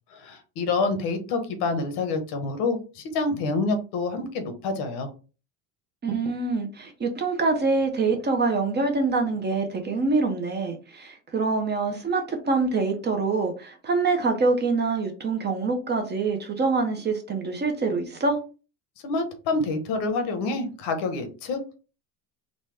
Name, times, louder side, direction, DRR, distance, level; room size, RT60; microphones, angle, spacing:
voice 1, 0.1-5.1 19.0-21.8, left 3 dB, 70° left, 1.0 m, -27 dB
voice 2, 6.0-18.4, right 3 dB, 25° right, 0.7 m, -25 dB
4.0 x 2.2 x 3.3 m
cardioid pair, 130°, 42 cm